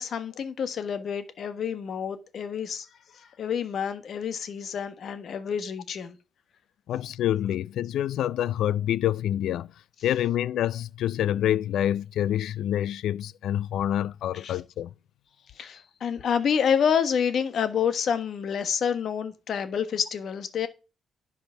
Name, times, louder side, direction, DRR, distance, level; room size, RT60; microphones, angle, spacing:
voice 1, 0.0-2.9 3.1-6.2 14.3-14.6 15.6-20.7, left 7 dB, 60° left, 1.3 m, -28 dB
voice 2, 6.9-9.7 10.0-14.9, left 11 dB, 75° left, 0.4 m, -27 dB
10.5 x 5.0 x 5.8 m
cardioid pair, 90°, 0 cm